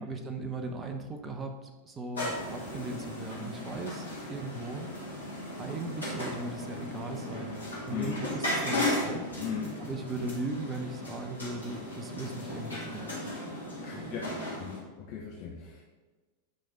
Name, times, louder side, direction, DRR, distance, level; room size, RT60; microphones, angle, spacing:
voice 1, 0.0-4.9 5.6-7.6 7.9-9.3 9.8-13.3 13.9-14.1, right 2 dB, 20° right, 5 dB, 1.0 m, -38 dB
sound 1, 2.1-14.8, left 1 dB, 80° left, 2.5 m, -36 dB
voice 2, 9.4-9.7 13.8-14.3 14.6-15.8, left 7 dB, 45° left, -2 dB, 1.0 m, -37 dB
9.2 x 5.2 x 4.0 m, 1.3 s
figure-of-eight pair, 90°, 0 cm